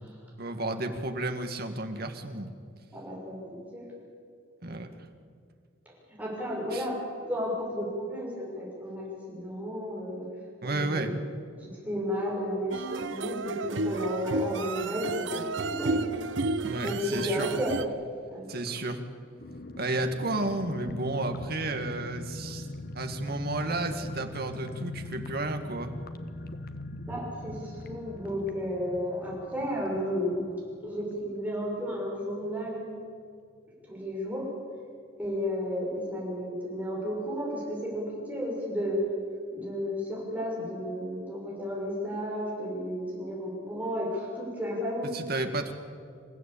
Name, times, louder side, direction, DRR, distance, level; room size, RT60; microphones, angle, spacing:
voice 1, 0.4-2.5 4.6-4.9 6.7-6.9 10.6-11.2 16.6-17.5 18.5-19.0 19.8-22.7 22.9-25.9 45.1-45.7, right 2 dB, 50° right, 6 dB, 2.0 m, -32 dB
voice 2, 2.9-3.8 6.2-7.0 7.2-10.3 10.6-11.1 11.6-15.4 15.7-16.1 16.8-17.7 18.3-18.5 27.1-30.4 30.8-32.9 33.8-34.5 35.2-39.0 39.5-45.1, equal, 10° right, -4 dB, 5.9 m, -33 dB
sound 1, 12.7-17.8, right 2 dB, 70° right, 0.8 m, -32 dB
sound 2, 19.4-31.7 32.0-32.1 32.4-32.7, left 2 dB, 50° left, 1.2 m, -42 dB
27.0 x 15.0 x 8.6 m, 2.3 s
head